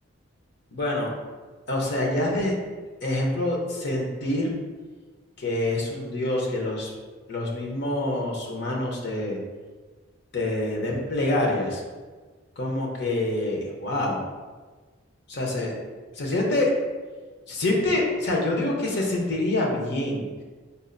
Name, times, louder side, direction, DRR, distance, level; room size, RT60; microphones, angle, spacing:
voice 1, 0.7-1.1 1.7-2.6 3.0-4.5 5.4-6.9 7.3-9.4 10.3-11.8 12.6-14.2 15.3-15.7 16.2-16.7 17.5-20.2, left 1 dB, 55° left, -1 dB, 0.7 m, -26 dB
5.3 x 2.4 x 2.5 m, 1.4 s
head